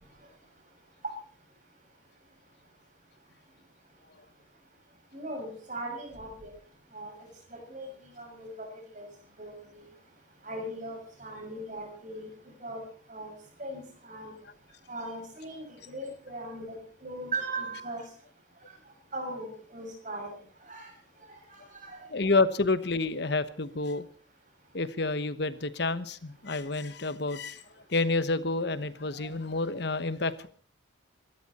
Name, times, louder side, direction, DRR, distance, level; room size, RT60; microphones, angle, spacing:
voice 1, 5.1-6.5 6.9-8.7 8.9-9.1 9.4-9.9 10.4-12.3 12.6-12.8 13.1-13.3 13.6-14.3 14.9-16.8 17.0-18.0 19.1-20.3 20.7-20.9 21.5-22.0 29.2-29.3, right 2 dB, 40° right, 3 dB, 6.5 m, -39 dB
voice 2, 22.1-24.0 24.7-27.6 27.9-30.5, left 3 dB, 60° left, 14 dB, 1.1 m, -29 dB
25.0 x 13.5 x 4.3 m, 0.42 s
head